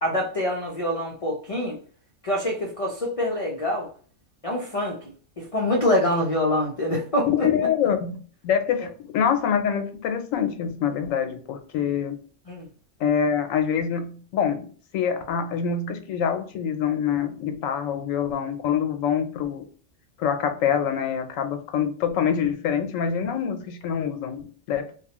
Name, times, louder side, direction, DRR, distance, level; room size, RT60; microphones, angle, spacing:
voice 1, 0.0-1.8 2.2-3.9 4.4-7.5 12.5-12.7, left 1 dB, 45° left, -1 dB, 0.4 m, -25 dB
voice 2, 7.3-12.2 13.0-19.7 20.2-24.9, left 8 dB, 85° left, 7 dB, 1.0 m, -25 dB
2.9 x 2.2 x 2.9 m, 0.42 s
omnidirectional pair, 1.3 m